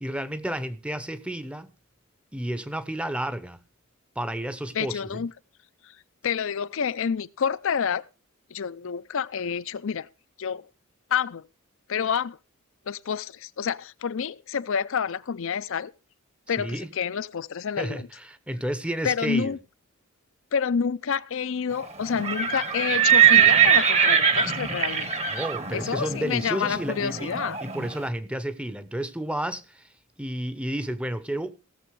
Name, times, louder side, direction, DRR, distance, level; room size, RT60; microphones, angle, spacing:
voice 1, 0.0-1.7 2.3-3.6 4.2-5.2 16.6-16.9 17.8-19.6 25.3-27.3 27.6-29.9 30.2-31.6, right 1 dB, 5° right, 0.7 m, -31 dB
voice 2, 4.7-5.3 5.8-5.9 6.2-8.0 8.5-10.1 10.4-10.7 11.1-11.4 11.9-12.4 12.9-15.9 16.5-18.1 19.0-19.6 20.5-25.2 25.7-27.6, left 7 dB, 65° left, 0.5 m, -28 dB
Livestock farm animals working animals, 22.1-27.9, right 8 dB, 30° right, 1.1 m, -21 dB
17.0 x 7.0 x 4.7 m
head